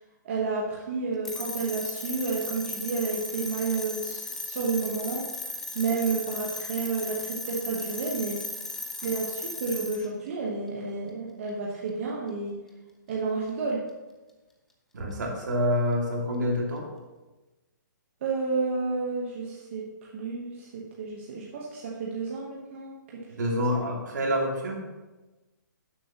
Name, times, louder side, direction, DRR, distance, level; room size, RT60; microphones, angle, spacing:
voice 1, 0.2-5.2 5.7-8.4 9.0-12.5 13.1-13.8 18.2-23.2 23.5-23.8, right 4 dB, 35° right, -4 dB, 1.2 m, -31 dB
sound 1, 1.3-10.1, left 2 dB, 5° left, 0.4 m, -36 dB
voice 2, 14.9-16.9 23.3-24.9, equal, 65° right, 0 dB, 2.3 m, -27 dB
11.5 x 7.2 x 3.0 m, 1.2 s
hypercardioid pair, 165°, 11 cm